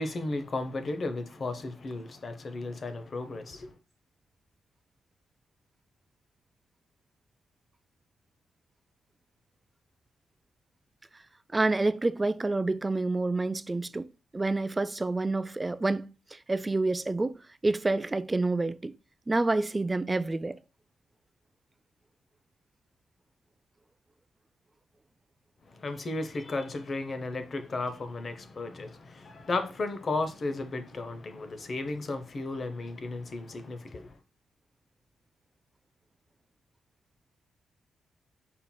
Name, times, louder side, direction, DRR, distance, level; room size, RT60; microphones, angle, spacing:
voice 1, 0.0-3.7 25.7-34.2, left 2 dB, 45° left, 0.7 m, -34 dB
voice 2, 11.5-14.1 14.3-16.1 16.3-17.3 17.6-18.9 19.3-20.6, right 2 dB, 20° right, 0.3 m, -28 dB
5.6 x 4.3 x 2.2 m
cardioid pair, 90°, 0 cm